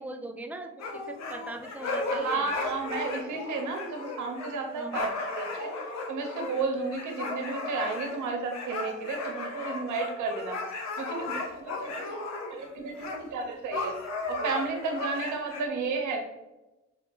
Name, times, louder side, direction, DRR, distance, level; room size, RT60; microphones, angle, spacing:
voice 1, 0.0-2.5 4.7-5.1, right 2 dB, 5° right, 5 dB, 0.3 m, -41 dB
sound 1, 0.8-12.7 12.9-13.2 13.7-15.6, left 3 dB, 65° left, 0.7 m, -35 dB
voice 2, 2.1-5.7 6.1-10.6 11.0-14.0 14.3-16.2, right 4 dB, 75° right, 3 dB, 0.9 m, -33 dB
5.3 x 2.1 x 2.9 m, 1.0 s
cardioid pair, 90°, 30 cm